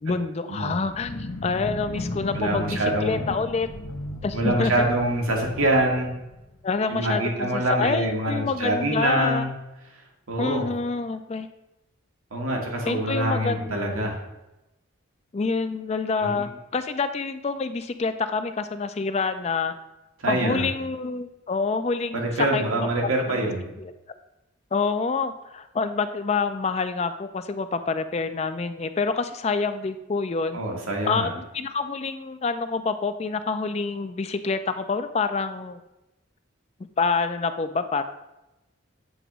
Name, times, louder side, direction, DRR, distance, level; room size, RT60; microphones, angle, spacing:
voice 1, 0.0-3.7 4.2-4.7 6.6-9.5 10.4-11.5 12.9-14.1 15.3-19.7 20.3-23.5 23.8-23.9 24.7-30.6 31.1-35.8 37.0-38.0, left 4 dB, 30° left, 10 dB, 0.3 m, -27 dB
sound 1, 0.9-6.8, left 1 dB, 70° left, 0.9 m, -35 dB
voice 2, 2.3-3.2 4.3-6.1 6.9-9.5 10.3-10.6 12.3-14.2 16.2-16.3 20.2-20.7 22.1-23.6 30.5-31.3, right 1 dB, 90° right, 0 dB, 1.6 m, -25 dB
8.0 x 3.0 x 6.0 m, 0.98 s
head